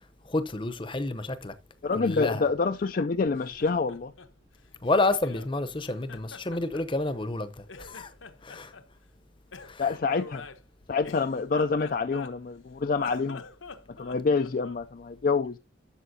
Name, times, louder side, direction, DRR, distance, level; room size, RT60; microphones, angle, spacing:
voice 1, 0.3-1.5 2.0-2.4 4.8-7.5 7.8-8.1 8.4-8.7 9.6-9.9, left 2 dB, 25° left, 0.7 m, -29 dB
voice 2, 1.8-4.1 9.8-10.5 10.9-13.4 13.9-15.6, left 4 dB, 45° left, 0.4 m, -27 dB
Laughter, 3.2-5.5 5.9-7.4 7.7-8.9 9.5-12.6 12.9-14.9, left 4 dB, 80° left, 1.1 m, -46 dB
12.5 x 7.1 x 2.7 m
head